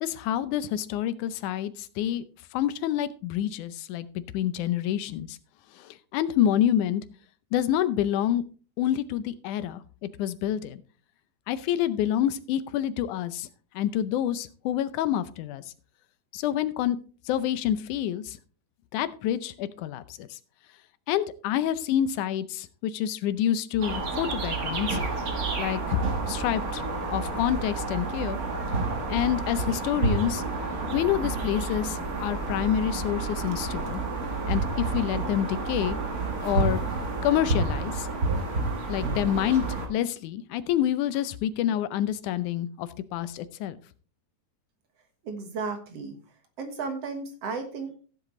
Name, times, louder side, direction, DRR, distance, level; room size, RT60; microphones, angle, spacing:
voice 1, 0.0-2.2 2.5-4.1 4.3-5.4 5.8-7.0 7.5-8.4 8.8-9.8 10.2-10.8 11.5-13.5 13.8-15.6 16.3-17.0 17.3-18.4 18.9-20.4 21.1-25.0 25.6-26.0 26.3-26.8 27.1-28.4 29.1-30.4 30.9-34.0 34.5-36.0 36.4-36.8 37.2-38.1 38.9-43.8, left 11 dB, 85° left, 13 dB, 2.2 m, -27 dB
sound 1, 23.8-39.9, right 3 dB, 40° right, 1.5 m, -29 dB
voice 2, 45.2-46.1 46.6-48.0, right 4 dB, 60° right, 6 dB, 2.3 m, -34 dB
15.5 x 7.7 x 3.2 m, 0.40 s
omnidirectional pair, 3.4 m